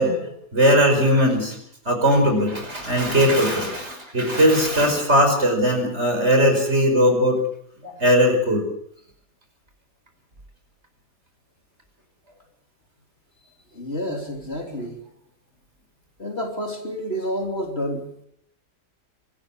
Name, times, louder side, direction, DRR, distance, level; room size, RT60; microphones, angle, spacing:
voice 1, 0.0-1.6 1.9-7.4 7.8-8.6, equal, 35° right, 4 dB, 5.6 m, -19 dB
voice 2, 13.7-15.0 16.2-18.2, equal, 35° left, 2 dB, 3.7 m, -29 dB
25.0 x 13.5 x 8.9 m, 0.69 s
omnidirectional pair, 1.9 m